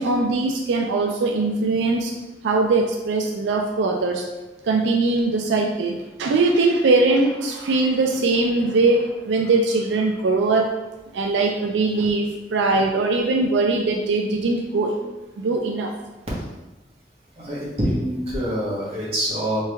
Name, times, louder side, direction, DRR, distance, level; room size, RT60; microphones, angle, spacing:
voice 1, 0.0-2.1 2.4-4.2 4.6-10.7 11.1-15.0 15.4-15.9, right 3 dB, 85° right, 2 dB, 0.4 m, -21 dB
voice 2, 17.4-19.6, equal, 35° right, -7 dB, 1.2 m, -25 dB
3.4 x 3.2 x 3.3 m, 1.1 s
head